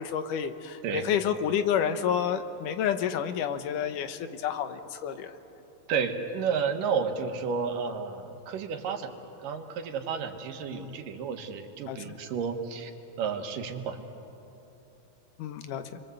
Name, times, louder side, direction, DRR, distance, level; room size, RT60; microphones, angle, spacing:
voice 1, 0.0-5.3 10.7-10.9 11.9-12.2 15.4-16.0, left 8 dB, 80° left, 10 dB, 2.6 m, -30 dB
voice 2, 5.9-9.1 9.4-12.9 13.2-14.1, right 6 dB, 90° right, 5 dB, 3.1 m, -31 dB
29.5 x 23.0 x 8.0 m, 3.0 s
omnidirectional pair, 3.7 m